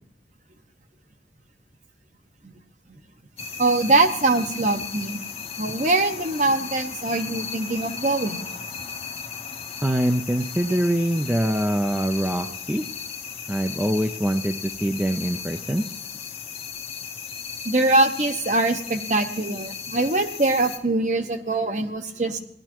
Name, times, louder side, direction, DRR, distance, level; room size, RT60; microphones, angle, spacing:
sound 1, 3.4-20.8, left 6 dB, 35° left, 0.8 m, -36 dB
voice 1, 3.6-5.2 5.6-8.4 17.6-22.4, right 2 dB, 45° right, 7 dB, 0.9 m, -23 dB
voice 2, 9.8-12.9 13.5-15.8, right 1 dB, 10° right, 5 dB, 0.5 m, -24 dB
18.0 x 11.5 x 3.0 m, 0.75 s
head